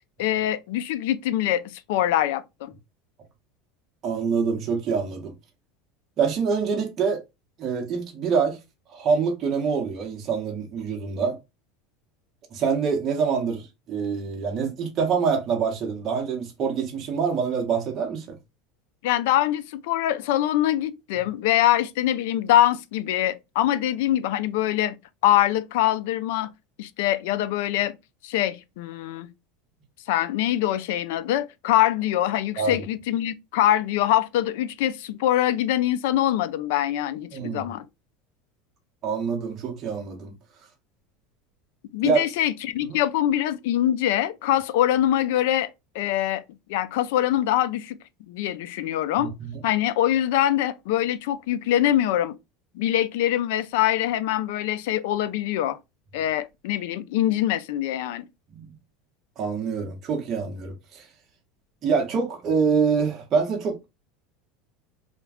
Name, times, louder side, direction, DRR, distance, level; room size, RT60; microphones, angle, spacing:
voice 1, 0.2-1.6 1.9-2.7 19.0-24.9 25.2-26.5 26.8-27.9 28.2-29.3 30.1-37.8 41.9-45.7 45.9-46.4 46.7-48.0 48.3-49.3 49.6-52.3 52.7-55.8 56.1-58.3, left 12 dB, 75° left, 0.3 m, -23 dB
voice 2, 4.0-5.3 6.2-7.2 7.6-8.6 8.9-11.4 12.5-18.4 32.6-32.8 37.3-37.7 39.0-40.3 42.0-42.3 49.2-49.5 58.5-58.7 59.4-61.1 61.8-63.8, right 5 dB, 35° right, 0.7 m, -25 dB
2.4 x 2.2 x 3.4 m
supercardioid pair, 140°, 0 cm